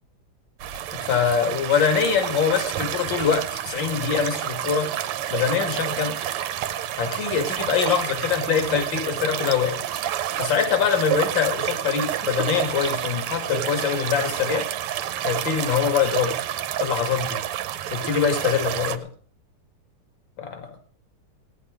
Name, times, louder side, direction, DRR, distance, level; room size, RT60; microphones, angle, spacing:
sound 1, 0.6-19.0, right 11 dB, 85° right, 1.7 m, -29 dB
voice 1, 0.9-4.9 5.3-6.2 7.0-9.8 10.4-14.7 15.2-16.4 16.8-17.4 17.9-19.1 20.4-20.7, left 7 dB, 60° left, 6 dB, 2.7 m, -24 dB
16.0 x 10.5 x 4.9 m, 0.41 s
omnidirectional pair, 2.4 m